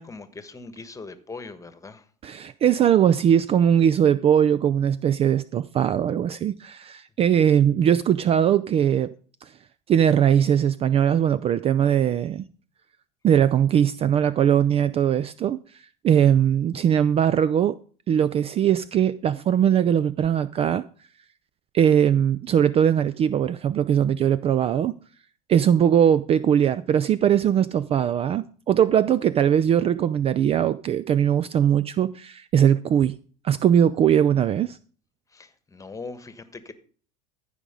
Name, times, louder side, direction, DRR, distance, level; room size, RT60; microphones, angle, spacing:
voice 1, 0.0-2.1 35.3-36.7, left 3 dB, 15° left, 1.3 m, -40 dB
voice 2, 2.2-9.1 9.4-9.6 9.9-12.5 13.2-17.8 18.1-20.9 21.7-25.0 25.5-33.2 33.4-34.8, right 9 dB, 30° right, 0.4 m, -20 dB
14.5 x 5.0 x 5.1 m
hypercardioid pair, 85°, 19 cm